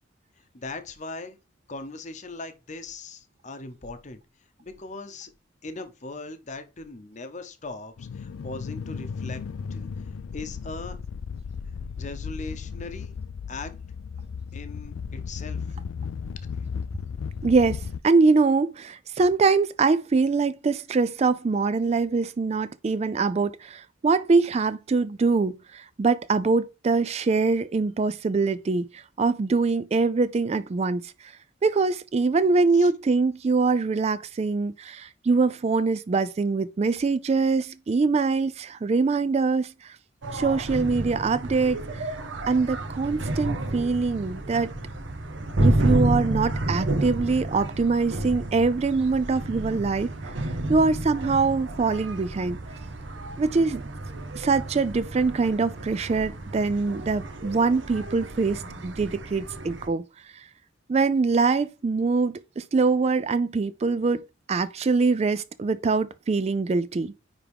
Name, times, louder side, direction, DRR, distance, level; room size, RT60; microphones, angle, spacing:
voice 1, 0.4-1.4 1.7-4.2 4.6-5.3 5.6-9.4 9.7-9.9 10.3-11.0 12.0-13.1 13.5-13.7 14.5-15.6 16.5-16.7 32.7-32.9, left 3 dB, 40° left, 0.8 m, -39 dB
sound 1, 8.0-18.0, left 6 dB, 90° left, 0.4 m, -35 dB
voice 2, 17.4-31.1 31.6-39.9 40.3-42.1 42.5-44.7 45.6-50.1 50.7-52.6 53.4-53.8 54.4-60.0 60.3-60.4 60.9-67.1, right 4 dB, 35° right, 0.3 m, -23 dB
sound 2, 40.2-59.9, right 1 dB, 70° right, 0.9 m, -30 dB
9.6 x 3.6 x 3.5 m
head